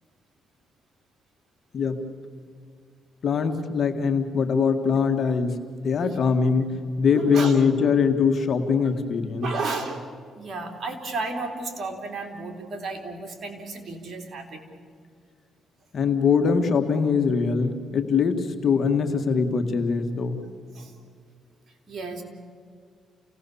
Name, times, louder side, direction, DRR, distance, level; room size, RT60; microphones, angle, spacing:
voice 1, 3.2-9.5 15.9-20.4, left 5 dB, 55° left, 6 dB, 1.9 m, -22 dB
voice 2, 7.1-7.6 9.4-10.0 10.4-14.6 20.7-20.9 21.7-22.2, right 3 dB, 45° right, 3 dB, 3.8 m, -33 dB
29.0 x 18.0 x 7.2 m, 2.1 s
cardioid pair, 90°, 0 cm